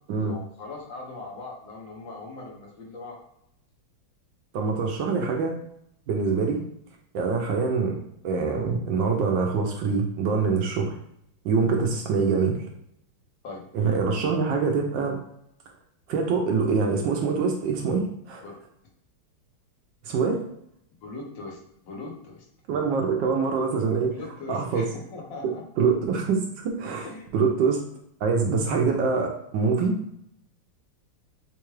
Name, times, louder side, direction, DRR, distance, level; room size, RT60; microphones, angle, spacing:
voice 1, 0.2-3.2 13.4-13.6 18.4-18.5 21.0-22.4 24.1-25.6 27.0-27.3, left 3 dB, 65° left, -2 dB, 1.5 m, -40 dB
voice 2, 4.5-5.6 6.1-6.6 7.1-8.0 8.2-10.9 11.4-12.6 13.7-15.2 16.1-18.4 20.0-20.4 22.7-24.2 24.5-24.9 25.8-27.1 27.3-27.8 28.2-30.0, right 5 dB, 75° right, 2 dB, 1.1 m, -24 dB
4.6 x 2.3 x 3.1 m, 0.74 s
omnidirectional pair, 2.4 m